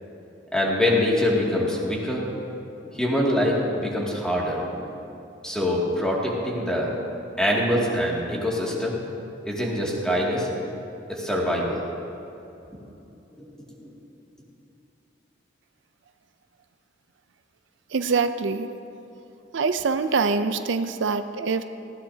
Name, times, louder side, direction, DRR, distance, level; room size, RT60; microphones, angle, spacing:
voice 1, 0.5-2.2 3.0-4.9 5.4-6.9 7.4-9.0 9.4-10.7 11.1-11.8 13.4-13.5 13.8-13.9, left 1 dB, 5° left, -4 dB, 2.3 m, -24 dB
voice 2, 17.9-18.7 19.5-21.6, right 4 dB, 75° right, 9 dB, 0.5 m, -24 dB
19.5 x 16.0 x 2.8 m, 2.9 s
head